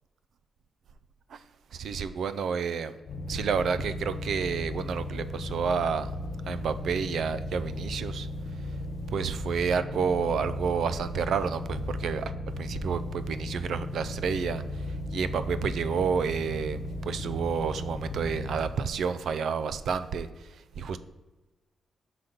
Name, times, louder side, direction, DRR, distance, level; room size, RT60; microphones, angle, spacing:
voice 1, 1.7-2.9 3.3-6.1 6.5-8.3 9.1-14.6 15.1-20.3 20.8-21.0, right 6 dB, 60° right, 12 dB, 0.4 m, -30 dB
sound 1, 3.0-18.6, left 1 dB, 65° left, 0.8 m, -36 dB
5.8 x 3.9 x 5.1 m, 1.2 s
wide cardioid pair, 175°, 0 cm